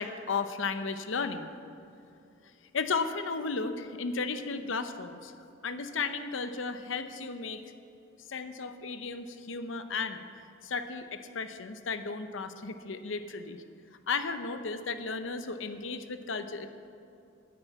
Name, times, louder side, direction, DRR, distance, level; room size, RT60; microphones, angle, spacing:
voice 1, 0.0-1.5 2.7-5.3 5.6-7.6 8.3-10.3 10.6-13.6 14.1-16.7, left 4 dB, 75° left, 9 dB, 0.8 m, -34 dB
9.7 x 9.4 x 8.2 m, 2.6 s
head